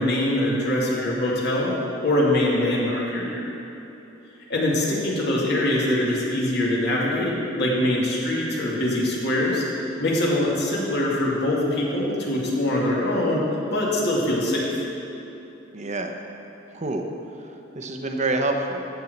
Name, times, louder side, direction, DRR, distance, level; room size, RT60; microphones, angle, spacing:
voice 1, 0.0-1.7 2.0-3.5 4.5-9.6 10.0-14.7, left 1 dB, 60° left, -4 dB, 2.4 m, -23 dB
voice 2, 15.7-16.2 16.7-17.1 17.4-18.9, right 2 dB, 35° right, 4 dB, 0.9 m, -27 dB
13.0 x 4.6 x 7.9 m, 2.9 s
head